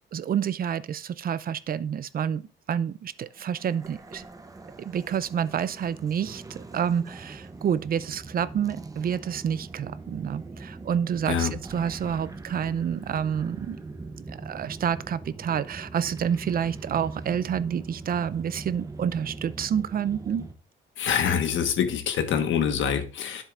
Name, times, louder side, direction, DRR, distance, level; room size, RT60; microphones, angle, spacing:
voice 1, 0.1-2.4 2.7-4.2 4.8-13.8 14.2-20.4, right 8 dB, 50° right, 0.5 m, -28 dB
sound 1, 3.4-20.5, right 3 dB, 15° right, 0.8 m, -41 dB
voice 2, 21.0-23.4, left 8 dB, 75° left, 1.3 m, -25 dB
9.9 x 7.3 x 2.5 m
cardioid pair, 90°, 20 cm